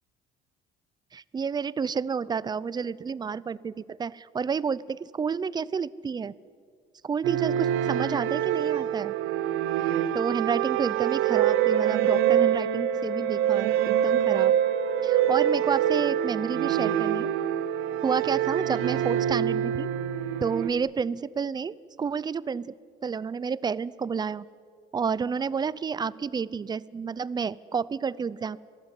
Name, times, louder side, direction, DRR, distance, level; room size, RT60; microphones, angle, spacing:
voice 1, 1.1-6.3 7.0-9.1 10.1-14.5 15.0-17.3 18.0-19.9 20.4-22.8 23.0-24.4 24.9-28.6, right 6 dB, 20° right, 21 dB, 0.5 m, -30 dB
sound 1, 7.2-20.7, right 10 dB, 75° right, 1.3 m, -25 dB
26.5 x 18.0 x 9.7 m, 2.2 s
cardioid pair, 135°, 21 cm